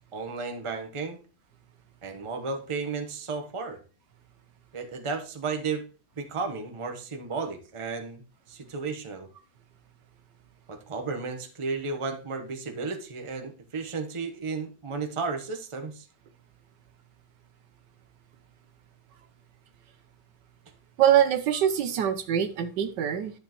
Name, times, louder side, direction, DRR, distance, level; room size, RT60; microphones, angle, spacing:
voice 1, 0.1-1.2 2.0-3.8 4.7-5.8 6.2-8.2 8.5-9.3 10.7-16.1, right 4 dB, 20° right, 0.8 m, -33 dB
voice 2, 21.0-23.3, right 10 dB, 70° right, 1.3 m, -23 dB
11.5 x 7.2 x 3.0 m
omnidirectional pair, 2.1 m